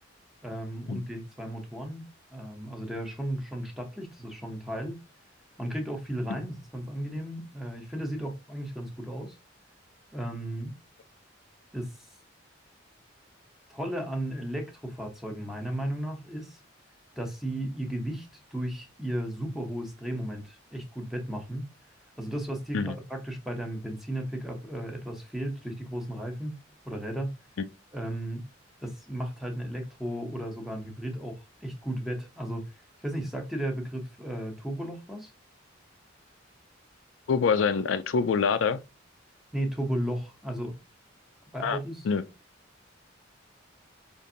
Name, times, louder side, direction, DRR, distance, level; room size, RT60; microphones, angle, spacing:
voice 1, 0.4-2.1 2.3-5.0 5.6-9.4 10.1-10.7 11.7-12.1 13.7-16.6 17.2-21.6 22.2-26.6 26.8-27.3 27.9-28.4 28.8-32.6 33.0-35.3 39.5-40.7 41.5-42.1, right 1 dB, ahead, 0.7 m, -34 dB
voice 2, 37.3-38.8 41.6-41.8 42.0-42.2, left 5 dB, 75° left, 0.4 m, -25 dB
5.0 x 2.6 x 2.7 m
head